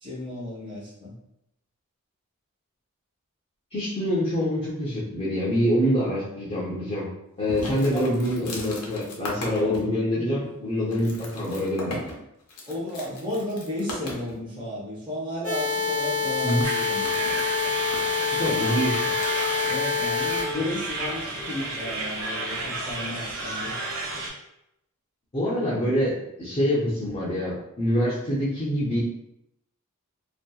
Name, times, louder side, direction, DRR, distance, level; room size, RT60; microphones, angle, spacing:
voice 1, 0.0-1.1 7.9-8.1 12.7-17.2 19.6-23.7 24.1-24.2, left 1 dB, 20° right, -8 dB, 0.8 m, -34 dB
voice 2, 3.7-7.1 7.4-12.0 16.4-16.7 18.2-19.0 20.5-20.6 25.3-29.0, equal, 30° left, -9 dB, 0.5 m, -25 dB
sound 1, 7.5-9.8 10.4-10.5 10.9-14.4 16.3-19.5, left 2 dB, 85° left, 0.6 m, -38 dB
sound 2, 15.4-20.4, left 4 dB, 50° right, 1.2 m, -26 dB
sound 3, 16.6-24.3, right 2 dB, 90° right, 0.6 m, -32 dB
2.7 x 2.1 x 2.2 m, 0.82 s
head